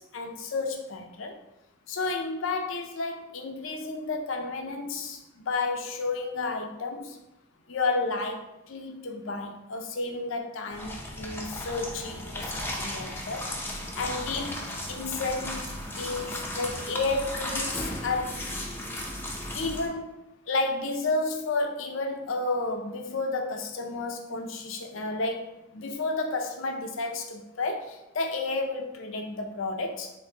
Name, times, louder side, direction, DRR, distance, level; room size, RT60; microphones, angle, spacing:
voice 1, 0.0-1.4 1.9-7.2 7.7-14.6 14.9-15.6 16.0-18.4 19.5-20.2 20.5-30.1, left 3 dB, 80° left, 4 dB, 0.6 m, -31 dB
sound 1, 10.7-19.9, left 1 dB, 10° left, 0.6 m, -35 dB
7.0 x 2.7 x 2.8 m, 0.86 s
head